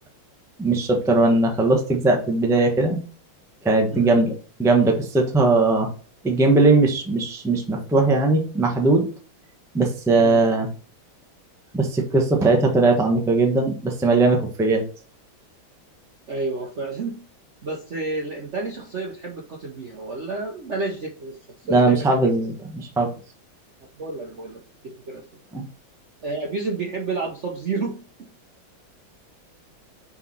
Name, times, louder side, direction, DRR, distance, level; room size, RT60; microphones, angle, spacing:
voice 1, 0.6-3.0 3.6-4.3 4.6-5.9 6.2-9.0 9.7-10.7 11.7-14.8 21.7-23.1 25.5-25.6, right 3 dB, ahead, 2 dB, 0.7 m, -19 dB
voice 2, 16.3-17.2 17.6-21.4 21.7-22.4 24.0-25.2 26.2-28.3, right 3 dB, 50° right, 0 dB, 0.9 m, -30 dB
5.5 x 4.2 x 5.6 m, 0.39 s
omnidirectional pair, 2.3 m